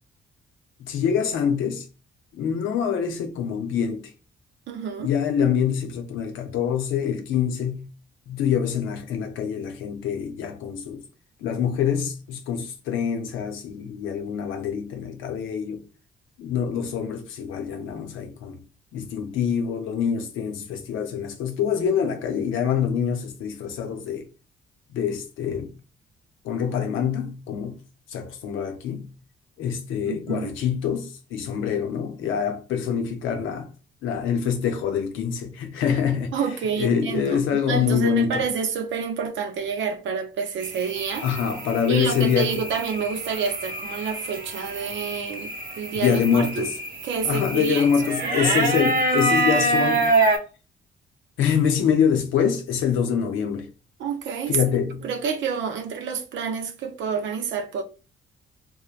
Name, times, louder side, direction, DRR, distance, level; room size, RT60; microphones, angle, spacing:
voice 1, 0.8-1.8 2.3-4.1 5.0-7.9 8.3-11.0 11.4-15.8 16.4-18.6 18.9-24.3 24.9-25.7 26.4-27.8 28.1-29.1 29.6-33.7 34.0-36.3 36.8-38.4 41.2-42.6 45.9-46.7 47.2-50.1 51.4-53.7 54.5-55.1, left 7 dB, 90° left, 0.6 m, -25 dB
voice 2, 4.7-5.1 30.0-30.5 36.3-41.3 41.9-46.7 47.0-47.9 48.2-48.4 54.0-54.6 55.0-57.8, right 6 dB, 70° right, 0.6 m, -28 dB
sound 1, 40.6-50.4, right 2 dB, 45° right, 0.9 m, -26 dB
3.1 x 2.1 x 2.4 m
cardioid pair, 90°, 20 cm